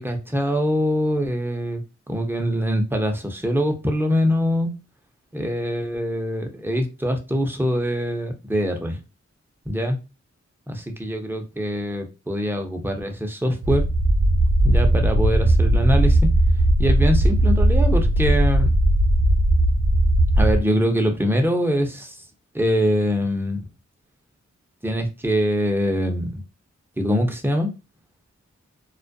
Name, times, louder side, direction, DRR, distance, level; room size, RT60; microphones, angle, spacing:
voice 1, 0.0-4.7 5.3-9.0 9.7-10.0 10.7-10.8 11.0-13.9 14.6-16.3 16.8-18.7 20.3-22.2 22.5-23.6 24.8-26.4 27.0-27.7, equal, 5° right, 3 dB, 0.6 m, -23 dB
sound 1, 13.6-20.6, right 1 dB, 65° right, 0.7 m, -18 dB
2.3 x 2.1 x 2.5 m, 0.29 s
cardioid pair, 45°, 29 cm